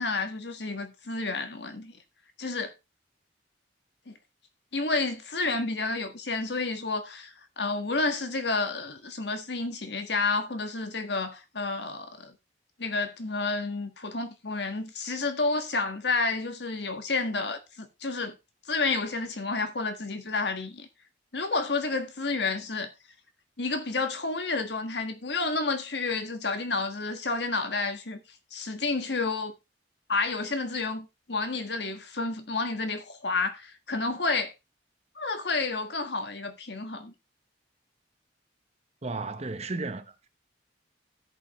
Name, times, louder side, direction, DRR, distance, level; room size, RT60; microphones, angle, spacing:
voice 1, 0.0-1.9 2.4-2.7 4.1-4.2 4.7-12.3 12.8-18.3 18.7-20.9 21.3-22.9 23.6-28.2 28.5-29.5 30.1-34.5 35.2-37.1, left 3 dB, 65° left, 1.6 m, -30 dB
voice 2, 39.0-40.3, right 3 dB, 35° right, 0.9 m, -34 dB
16.0 x 5.5 x 3.1 m
head